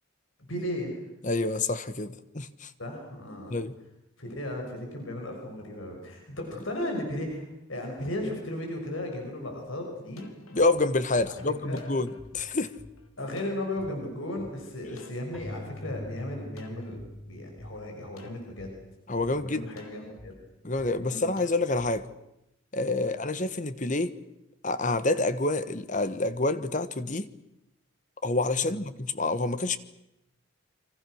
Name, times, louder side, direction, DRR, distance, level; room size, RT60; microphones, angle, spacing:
voice 1, 0.5-1.0 2.8-3.6 4.2-7.4 7.7-10.3 11.2-11.8 13.2-18.7 19.2-20.3 21.0-21.3 28.6-28.8, left 1 dB, 70° left, 6.2 m, -36 dB
voice 2, 1.2-2.7 3.5-3.7 10.5-12.7 19.1-19.7 20.6-22.1 22.7-24.1 24.6-27.3 28.2-29.8, left 2 dB, 35° left, 1.3 m, -28 dB
sound 1, 9.7-9.8 10.2-13.9 14.4-14.5 15.0-16.1 16.6-17.1 17.6-17.7 18.2-18.7 19.2-19.3 19.8-20.3 20.8-20.9 21.4-21.9, left 1 dB, 90° left, 3.8 m, -49 dB
Keyboard (musical), 15.3-18.9, left 1 dB, 5° left, 5.4 m, -43 dB
29.0 x 25.5 x 6.4 m
head